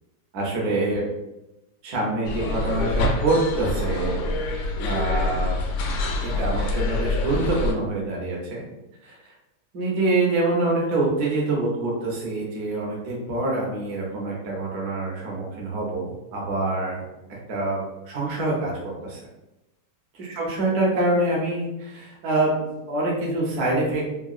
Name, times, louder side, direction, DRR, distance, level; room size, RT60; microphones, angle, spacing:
voice 1, 0.3-1.0 1.8-4.2 4.8-5.5 6.0-8.6 9.0-9.2 9.7-17.0 17.3-18.7 19.0-19.2 20.2-24.0, right 2 dB, 65° right, -3 dB, 1.2 m, -25 dB
sound 1, 2.2-7.7, left 2 dB, 75° left, 1.0 m, -26 dB
3.7 x 2.1 x 2.4 m, 0.94 s
omnidirectional pair, 1.9 m